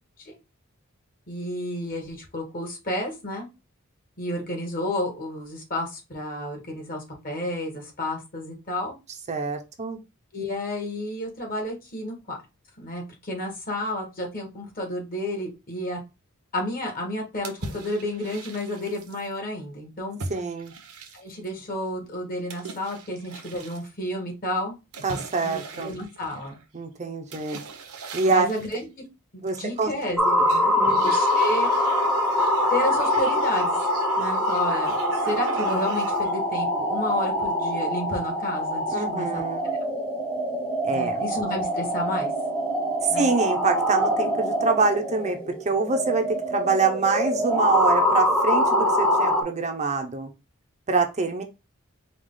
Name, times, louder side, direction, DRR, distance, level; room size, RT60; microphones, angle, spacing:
voice 1, 1.3-3.5 4.2-8.9 10.3-12.4 12.8-16.0 16.5-20.2 21.1-24.7 25.4-26.6 28.3-28.9 29.6-30.2 30.4-31.7 32.7-33.7 34.2-35.0 35.2-39.4 40.9-42.3 43.1-43.3, left 1 dB, 40° left, 1 dB, 1.5 m, -31 dB
voice 2, 9.3-10.0 20.3-20.7 25.0-26.0 26.7-27.6 28.1-28.5 29.4-29.9 30.3-30.4 30.8-31.0 38.9-39.7 40.8-41.2 43.1-45.4 45.6-50.3 50.9-51.4, right 4 dB, 30° right, 5 dB, 0.6 m, -25 dB
sound 1, 17.4-19.3 20.2-21.5 22.5-23.9 24.9-26.6 27.3-28.8 29.5-30.1 30.4-36.4, right 4 dB, 80° right, 0.9 m, -40 dB
sound 2, 30.2-49.4, left 1 dB, 5° left, 0.9 m, -24 dB
4.8 x 2.4 x 3.7 m, 0.26 s
head